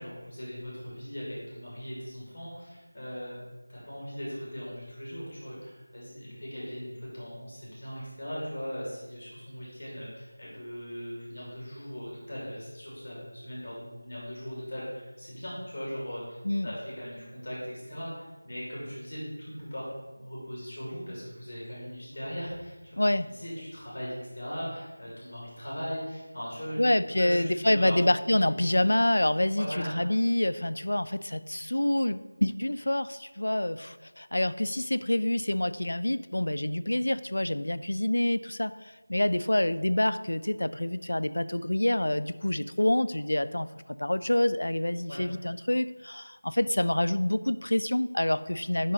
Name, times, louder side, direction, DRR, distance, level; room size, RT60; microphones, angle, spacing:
voice 1, 0.0-3.4 3.7-19.9 20.1-23.0 23.2-26.8 27.2-28.7 29.5-30.0 45.1-45.2, equal, 25° left, -6 dB, 2.2 m, -39 dB
voice 2, 23.0-23.3 26.8-43.7 44.0-48.9, left 1 dB, 85° left, 14 dB, 0.3 m, -27 dB
5.4 x 4.9 x 5.6 m, 1.2 s
figure-of-eight pair, 180°, 0 cm